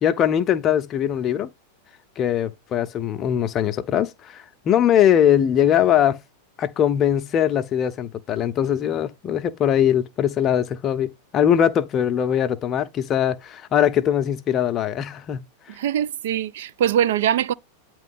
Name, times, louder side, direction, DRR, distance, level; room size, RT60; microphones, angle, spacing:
voice 1, 0.0-1.5 2.2-6.2 6.6-15.4, left 10 dB, 30° left, 0.6 m, -21 dB
voice 2, 15.8-17.5, right 10 dB, 55° right, 0.3 m, -22 dB
9.0 x 3.0 x 5.3 m
figure-of-eight pair, 90°, 0 cm